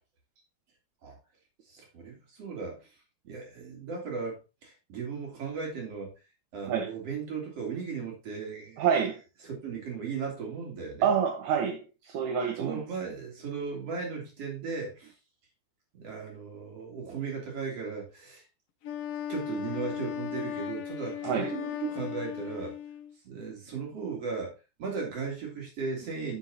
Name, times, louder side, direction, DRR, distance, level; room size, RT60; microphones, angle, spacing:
voice 1, 1.7-3.0 3.2-6.1 6.5-8.9 9.4-11.1 12.6-15.1 15.9-18.5 19.3-22.8 23.2-26.4, right 5 dB, 55° right, 4.2 m, -36 dB
voice 2, 8.8-9.2 11.0-12.8 21.2-21.5, right 7 dB, 75° right, 2.5 m, -27 dB
Wind instrument woodwind instrument, 18.8-23.2, left 10 dB, 60° left, 1.8 m, -36 dB
9.5 x 8.1 x 2.9 m
omnidirectional pair, 3.4 m